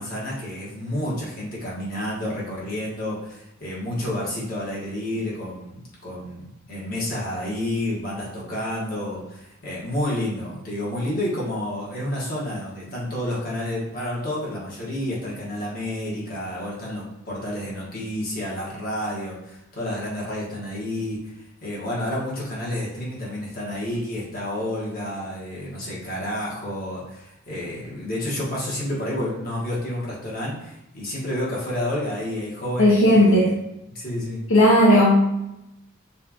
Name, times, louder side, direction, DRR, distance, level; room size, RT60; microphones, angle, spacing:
voice 1, 0.0-21.3 21.6-33.5 33.9-34.4, left 1 dB, 45° left, -6 dB, 1.6 m, -30 dB
voice 2, 32.8-33.4 34.5-35.2, left 1 dB, 75° left, -5 dB, 0.9 m, -15 dB
6.3 x 2.5 x 3.0 m, 0.87 s
head